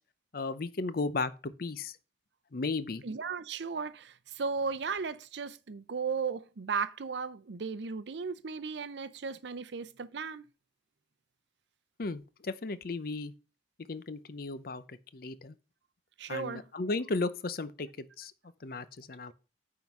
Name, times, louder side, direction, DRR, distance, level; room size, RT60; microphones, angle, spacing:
voice 1, 0.3-2.0 2.5-3.0 12.0-13.3 13.9-15.6 16.3-18.3 18.6-19.3, left 3 dB, 50° left, 0.6 m, -35 dB
voice 2, 3.0-10.5 16.2-16.6, right 5 dB, 70° right, 0.5 m, -35 dB
9.3 x 3.8 x 5.9 m
head